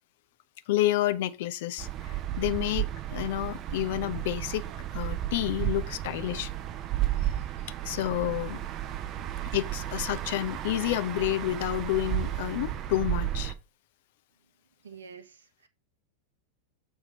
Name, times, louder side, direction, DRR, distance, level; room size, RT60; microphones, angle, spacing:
voice 1, 0.7-6.5 7.8-8.6 9.5-13.5, left 14 dB, 50° left, 0.6 m, -30 dB
sound 1, 1.8-13.5, right 12 dB, 35° right, 0.6 m, -33 dB
voice 2, 14.8-15.7, right 6 dB, 70° right, 0.9 m, -46 dB
7.2 x 3.4 x 5.3 m
figure-of-eight pair, 90°, 0 cm